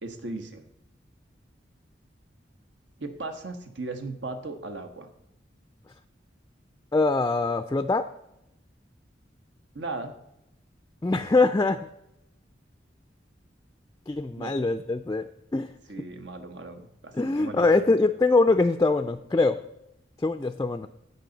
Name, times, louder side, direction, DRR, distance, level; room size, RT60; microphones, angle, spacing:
voice 1, 0.0-0.7 3.0-5.1 9.7-10.1 14.4-14.5 15.9-17.7, right 3 dB, 80° right, 7 dB, 1.2 m, -37 dB
voice 2, 6.9-8.1 11.0-11.9 14.1-15.7 17.2-19.6 20.2-20.9, left 3 dB, 20° left, 8 dB, 0.4 m, -23 dB
16.0 x 5.5 x 3.9 m, 0.84 s
head